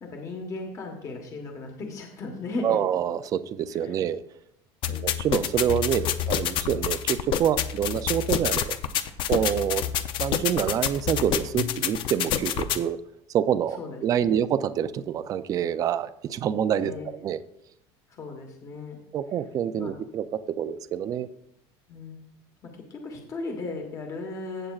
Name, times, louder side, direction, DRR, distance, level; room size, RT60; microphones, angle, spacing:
voice 1, 0.0-2.8 3.8-4.0 4.8-5.0 13.8-14.4 16.8-17.1 18.1-19.0 19.7-19.9 21.9-22.2 22.6-24.7, left 3 dB, 25° left, 2 dB, 1.3 m, -36 dB
voice 2, 2.6-4.2 4.9-8.8 9.3-9.8 10.2-13.0 13.3-17.4 19.1-21.3, right 9 dB, 30° right, 13 dB, 0.4 m, -27 dB
sound 1, 4.8-12.8, left 10 dB, 40° left, 0.5 m, -28 dB
15.5 x 7.5 x 2.4 m, 0.78 s
cardioid pair, 170°, 13 cm